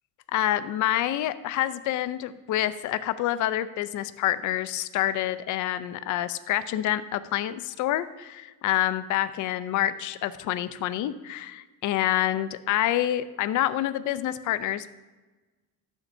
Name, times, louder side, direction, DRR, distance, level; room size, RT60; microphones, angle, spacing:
voice 1, 0.3-14.9, left 13 dB, 55° left, 13 dB, 0.6 m, -27 dB
17.5 x 7.3 x 2.7 m, 1.2 s
cardioid pair, 160°, 36 cm